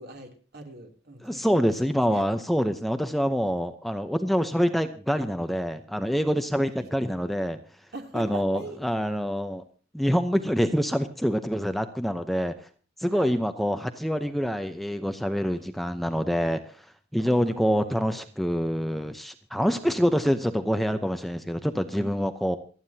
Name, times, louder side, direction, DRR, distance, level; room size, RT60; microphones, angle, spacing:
voice 1, 0.0-2.2 3.4-3.7 6.8-6.9 7.9-8.8 13.1-13.4 15.5-15.7 17.2-18.0 21.9-22.2, right 2 dB, 55° right, 3 dB, 3.1 m, -42 dB
voice 2, 1.2-7.6 8.1-9.6 9.9-12.5 13.0-16.6 17.1-22.6, equal, ahead, 8 dB, 0.8 m, -26 dB
28.0 x 9.5 x 2.8 m, 0.40 s
head